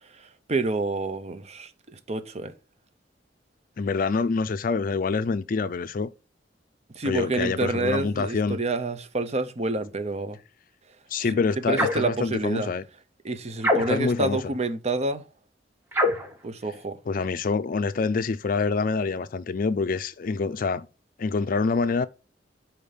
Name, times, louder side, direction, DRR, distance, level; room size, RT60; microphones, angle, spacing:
voice 1, 0.1-2.5 6.9-10.4 11.3-11.4 11.7-12.7 13.2-15.2 16.4-17.0, right 3 dB, 40° right, 0.7 m, -28 dB
voice 2, 3.8-6.1 7.0-8.6 11.1-12.8 13.7-14.4 17.1-20.9 21.2-22.1, left 4 dB, 50° left, 0.4 m, -26 dB
sound 1, 11.7-12.1 13.6-14.2 15.9-16.3, left 1 dB, 15° right, 1.5 m, -24 dB
5.1 x 4.4 x 5.5 m
head